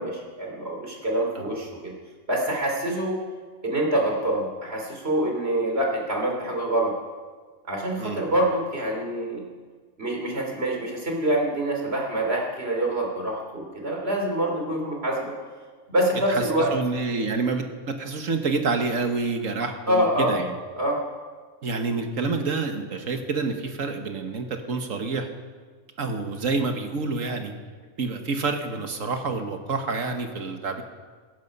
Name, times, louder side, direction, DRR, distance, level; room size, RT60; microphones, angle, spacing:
voice 1, 0.0-1.9 2.3-3.2 3.6-6.9 7.6-9.5 10.0-15.4 15.9-16.7 19.9-20.4 20.8-21.0, right 1 dB, 45° right, 0 dB, 3.5 m, -26 dB
voice 2, 16.7-20.6 21.6-25.3 26.0-27.5 28.0-30.8, right 4 dB, 65° right, 5 dB, 1.8 m, -28 dB
17.0 x 15.0 x 5.4 m, 1.5 s
omnidirectional pair, 1.4 m